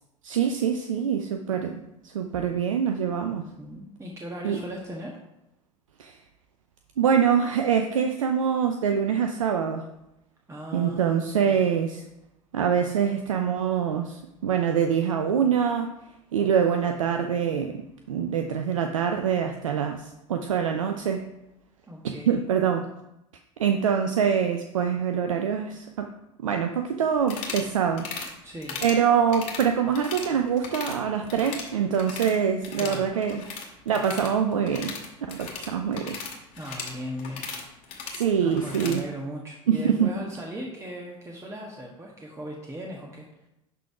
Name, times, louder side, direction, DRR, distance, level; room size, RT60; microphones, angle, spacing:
voice 1, 0.2-3.4 4.4-4.6 6.0-6.2 7.0-9.8 10.7-12.0 12.5-15.9 16.3-21.3 22.0-22.9 23.6-26.1 26.4-28.1 28.8-33.4 33.9-35.0 35.3-36.2 38.1-39.0 39.7-40.1, right 7 dB, 80° right, 5 dB, 0.6 m, -25 dB
voice 2, 3.3-5.2 10.5-11.2 11.4-11.7 21.9-22.4 28.4-28.8 32.8-33.1 36.6-37.5 38.4-43.3, equal, 15° right, -1 dB, 1.4 m, -38 dB
sound 1, 27.2-27.7 28.0-28.3 28.6-29.0 29.3-30.3 30.6-31.0 31.3-32.4 32.6-39.0, left 5 dB, 50° left, 2.0 m, -37 dB
11.5 x 4.0 x 4.8 m, 0.89 s
figure-of-eight pair, 75°, 17 cm